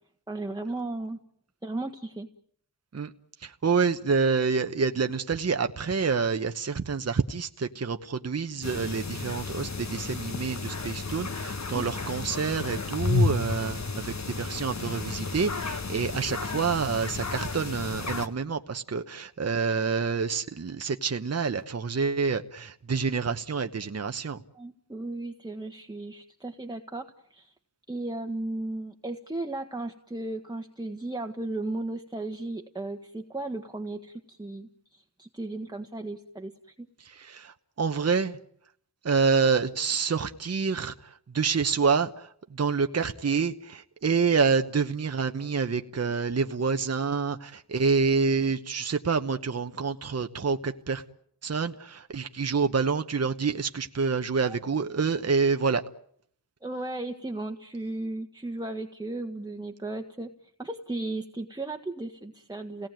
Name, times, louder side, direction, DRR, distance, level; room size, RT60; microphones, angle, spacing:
voice 1, 0.3-1.2 1.6-2.3 11.7-11.9 24.5-27.5 27.9-36.9 54.4-54.6 56.6-60.3 60.6-62.9, right 2 dB, 10° right, 4 dB, 1.5 m, -35 dB
voice 2, 3.4-24.4 37.0-38.4 39.0-51.0 51.4-55.8, right 5 dB, 40° right, 7 dB, 1.0 m, -27 dB
sound 1, 8.6-18.3, left 3 dB, 40° left, 1.6 m, -32 dB
28.5 x 18.0 x 9.1 m, 0.68 s
wide cardioid pair, 75°, 40 cm